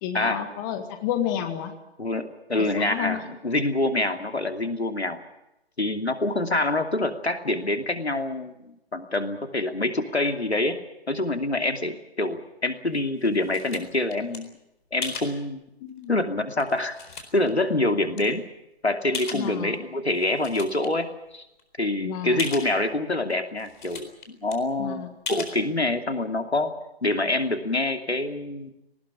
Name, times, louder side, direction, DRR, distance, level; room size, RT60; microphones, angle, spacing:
voice 1, 0.0-1.7 2.8-3.2 15.8-16.2 19.3-19.8 22.0-22.4 24.8-25.1, left 10 dB, 20° left, 7 dB, 1.6 m, -30 dB
voice 2, 2.0-5.2 5.8-10.8 11.1-14.5 14.9-15.6 16.1-17.0 17.3-18.4 18.8-21.1 21.3-21.5 21.8-26.7 27.0-28.7, left 2 dB, 85° left, 6 dB, 2.8 m, -26 dB
sound 1, 12.9-14.4 15.0-15.3 16.0-16.1 16.6-17.5 18.2-18.3 19.1-19.8 20.1-20.9 21.3-21.4 21.6-21.7 22.4-22.7 23.3-23.4 23.6-24.2 24.5-24.6 25.3-25.6, left 5 dB, 50° left, 4.2 m, -36 dB
19.5 x 18.5 x 9.8 m, 0.88 s
figure-of-eight pair, 140°, 32 cm